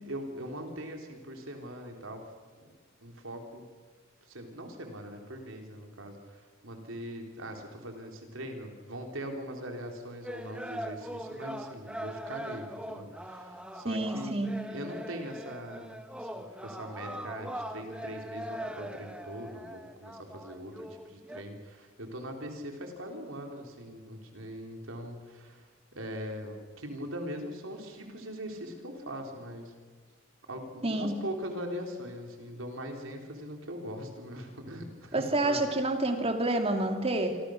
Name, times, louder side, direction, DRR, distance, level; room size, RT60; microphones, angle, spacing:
voice 1, 0.1-2.2 3.0-3.7 4.2-25.7 25.9-29.7 30.5-35.7, equal, 90° right, 3 dB, 3.8 m, -41 dB
sound 1, 10.2-21.4, equal, 5° right, 1.4 m, -41 dB
voice 2, 13.8-14.5 30.8-31.2 35.1-37.4, right 2 dB, 30° right, 5 dB, 2.4 m, -28 dB
27.0 x 25.5 x 6.5 m, 1.5 s
head